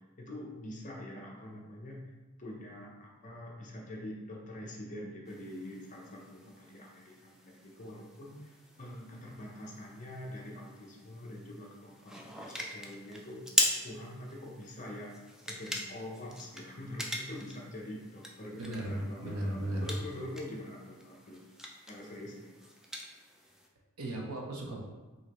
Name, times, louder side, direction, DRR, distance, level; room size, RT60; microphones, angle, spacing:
voice 1, 0.0-2.0 2.4-13.5 13.8-15.2 15.5-21.4 21.9-22.7, left 1 dB, 35° left, -2 dB, 0.7 m, -45 dB
sound 1, 5.3-23.7, equal, ahead, 0.3 m, -41 dB
voice 2, 18.6-20.0 24.0-24.8, right 1 dB, 85° right, -1 dB, 0.8 m, -36 dB
5.4 x 2.9 x 3.0 m, 1.3 s
head